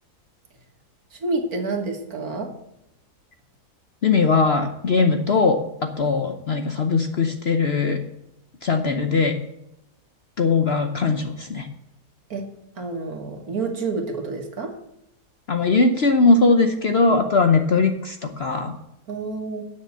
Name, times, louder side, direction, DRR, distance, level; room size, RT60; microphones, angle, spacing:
voice 1, 1.1-2.5 12.3-12.5 12.8-14.8 19.1-19.6, right 3 dB, 65° right, 3 dB, 2.1 m, -28 dB
voice 2, 4.0-8.0 8.6-9.4 10.4-11.7 15.5-18.7, left 4 dB, 50° left, 6 dB, 0.8 m, -20 dB
9.6 x 6.7 x 8.1 m, 0.82 s
omnidirectional pair, 1.7 m